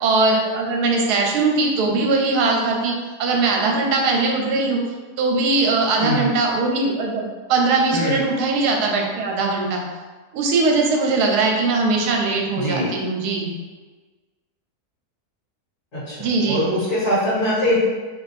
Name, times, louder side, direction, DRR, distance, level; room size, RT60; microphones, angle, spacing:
voice 1, 0.0-2.9 3.2-4.8 5.2-9.8 10.3-13.5 16.2-16.7, right 3 dB, 80° right, 0 dB, 1.2 m, -20 dB
voice 2, 12.5-12.9 15.9-17.8, equal, 55° left, -12 dB, 2.0 m, -22 dB
3.7 x 2.5 x 3.3 m, 1.4 s
omnidirectional pair, 1.7 m